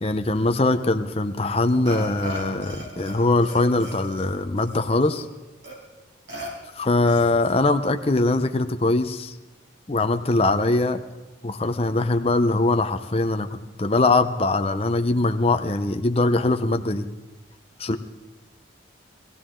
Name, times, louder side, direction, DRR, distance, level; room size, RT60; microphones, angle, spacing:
voice 1, 0.0-5.2 6.8-9.3 9.9-11.0 11.4-13.5 13.8-17.1 17.8-18.0, left 2 dB, 30° left, 7 dB, 0.7 m, -22 dB
Burping eructation, 1.9-3.2 3.4-5.2 5.6-5.7 6.3-6.5 7.1-7.6, equal, 65° right, 4.8 m, -37 dB
21.0 x 15.5 x 3.8 m, 1.2 s
head